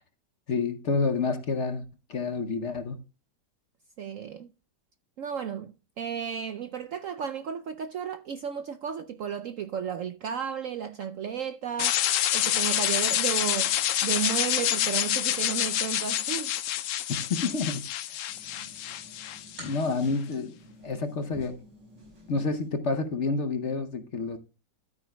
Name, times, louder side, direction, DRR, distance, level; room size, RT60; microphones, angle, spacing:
voice 1, 0.5-3.0 17.1-18.2 19.6-20.6 20.8-21.6 22.3-24.4, left 4 dB, 50° left, 1.0 m, -29 dB
voice 2, 4.0-4.5 5.2-12.0 12.3-16.5, right 8 dB, 70° right, 0.8 m, -33 dB
sound 1, 11.8-19.8, left 12 dB, 75° left, 0.7 m, -27 dB
sound 2, 18.3-22.7, equal, 85° right, 6.0 m, -50 dB
12.5 x 9.1 x 2.2 m
omnidirectional pair, 1.9 m